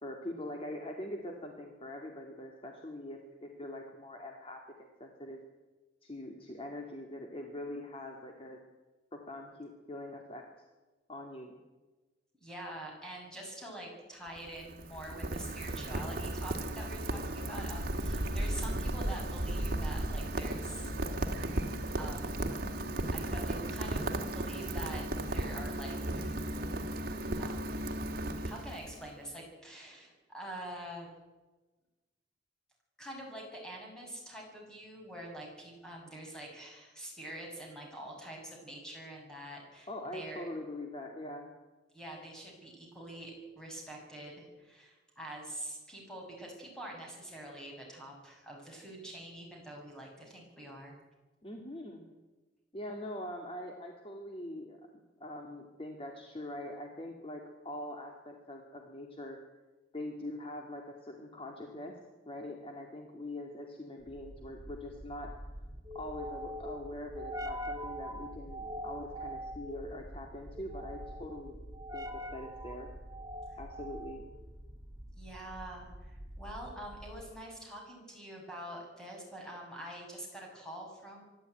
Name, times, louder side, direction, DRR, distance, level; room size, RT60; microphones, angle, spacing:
voice 1, 0.0-4.6 5.0-5.4 6.0-8.6 9.1-10.5 11.1-11.6 39.9-41.5 51.4-52.0 52.7-54.8 55.2-59.4 59.9-62.0 62.3-65.3 65.9-71.6 71.9-72.9 73.6-74.2, left 1 dB, 30° left, 2 dB, 2.2 m, -43 dB
voice 2, 12.4-20.9 22.0-22.5 23.1-26.4 27.4-28.0 28.4-31.1 33.0-40.5 41.9-51.0 73.5-73.6 75.2-81.2, right 1 dB, 5° left, -1 dB, 6.9 m, -46 dB
Rain, 14.3-29.1, right 1 dB, 55° right, 2.0 m, -35 dB
sound 1, 64.1-77.4, equal, 20° right, 1.7 m, -44 dB
24.5 x 12.5 x 9.1 m, 1.2 s
head